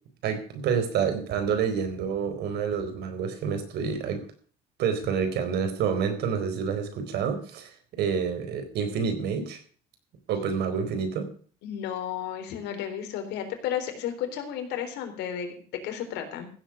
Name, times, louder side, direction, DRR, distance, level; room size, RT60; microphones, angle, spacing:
voice 1, 0.2-4.3 4.8-9.6 10.3-11.3, right 6 dB, 75° right, 8 dB, 4.1 m, -28 dB
voice 2, 11.6-16.5, left 9 dB, 85° left, 5 dB, 3.8 m, -33 dB
15.5 x 8.0 x 6.2 m, 0.44 s
cardioid pair, 110°, 17 cm